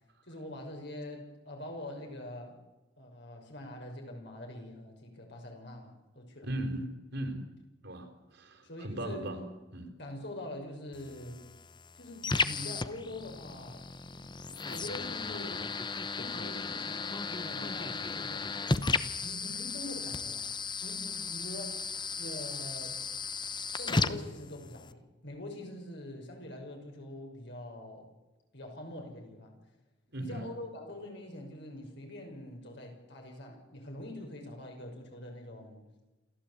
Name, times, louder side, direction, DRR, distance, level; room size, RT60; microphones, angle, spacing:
voice 1, 0.2-2.6 3.0-6.5 8.6-9.3 10.0-11.4 11.9-15.7 16.1-20.5 20.8-21.9 22.2-23.0 23.8-28.1 28.5-29.6 30.2-35.8, left 1 dB, 65° left, 2 dB, 6.3 m, -44 dB
voice 2, 6.4-7.4 7.8-9.4 9.7-9.9 30.1-30.5, right 1 dB, 65° right, 5 dB, 3.9 m, -38 dB
sound 1, 10.9-24.9, left 4 dB, 25° left, 0.9 m, -35 dB
28.0 x 14.5 x 8.5 m, 1.1 s
head